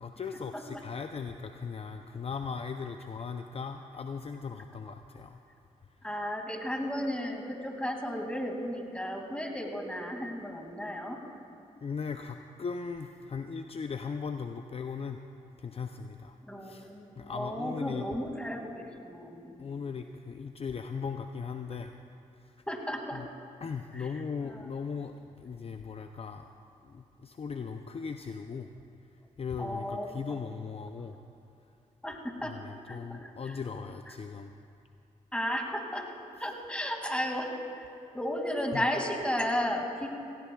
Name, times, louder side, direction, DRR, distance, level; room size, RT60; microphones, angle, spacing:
voice 1, 0.0-5.4 5.8-6.0 11.7-15.2 15.6-16.9 17.2-18.1 19.6-21.9 22.3-22.6 23.1-23.3 23.6-26.5 26.8-28.7 29.4-31.2 32.4-34.5 38.7-38.8, left 5 dB, 40° left, 6 dB, 0.5 m, -38 dB
voice 2, 6.0-11.2 16.4-19.6 22.7-23.2 23.9-24.1 24.5-24.7 29.6-30.2 32.0-32.5 32.9-33.5 35.3-36.1 36.4-37.8 38.1-40.1, equal, 10° left, 2 dB, 2.4 m, -34 dB
18.5 x 16.5 x 2.4 m, 2.6 s
supercardioid pair, 50°, 15 cm